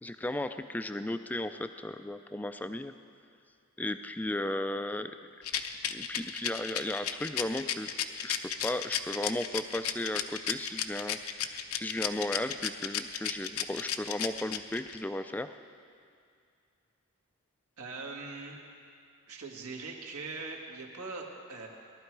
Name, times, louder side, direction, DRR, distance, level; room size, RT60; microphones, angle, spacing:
voice 1, 0.0-2.9 3.8-5.1 5.9-7.9 8.2-15.5, left 1 dB, 5° left, 9 dB, 0.3 m, -35 dB
Rattle, 5.4-15.0, left 10 dB, 75° left, 0.7 m, -33 dB
voice 2, 17.8-18.6 19.3-21.7, right 3 dB, 80° right, 0 dB, 1.8 m, -41 dB
19.0 x 12.0 x 4.7 m, 2.3 s
head